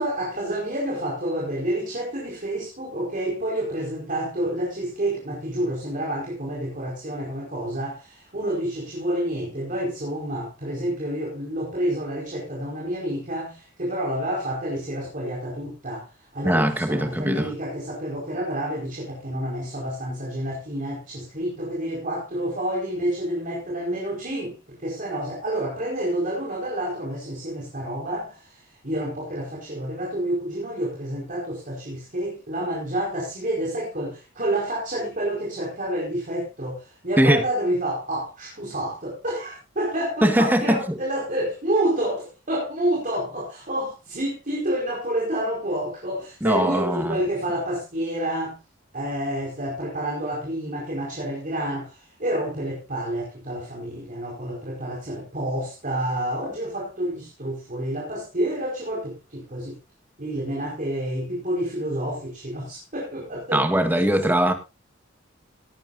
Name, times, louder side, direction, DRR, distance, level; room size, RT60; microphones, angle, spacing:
voice 1, 0.0-48.6 48.9-59.8 60.2-63.6 63.9-64.3, right 1 dB, 40° right, 4.7 m, -29 dB
voice 2, 16.4-17.5 37.2-37.4 40.2-41.0 46.4-47.2 63.5-64.5, right 1 dB, 10° right, 1.8 m, -21 dB
18.0 x 11.0 x 2.6 m
head